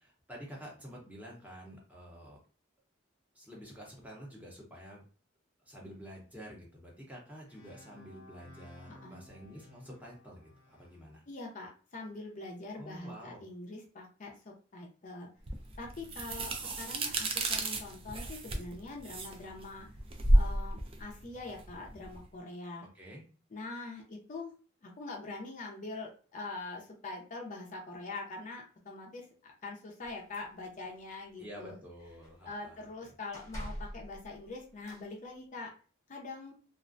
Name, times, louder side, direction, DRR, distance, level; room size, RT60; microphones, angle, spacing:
voice 1, 0.0-2.4 3.3-5.0 5.6-11.2 12.7-13.4 22.9-23.2 31.4-33.1, equal, 10° right, -3 dB, 0.7 m, -49 dB
sound 1, 7.5-11.1, left 1 dB, 90° left, 0.7 m, -56 dB
voice 2, 11.3-15.3 15.8-19.9 20.3-22.9 23.5-24.5 24.8-29.2 29.6-31.7 32.4-35.7 36.1-36.5, left 3 dB, 40° left, 0 dB, 0.5 m, -43 dB
sound 2, 15.5-22.2, right 1 dB, 30° right, 0.3 m, -31 dB
sound 3, 30.0-31.0 31.4-31.7 32.0-32.6 33.3-35.1, equal, 15° left, 1.0 m, -46 dB
2.4 x 2.1 x 2.5 m, 0.38 s
head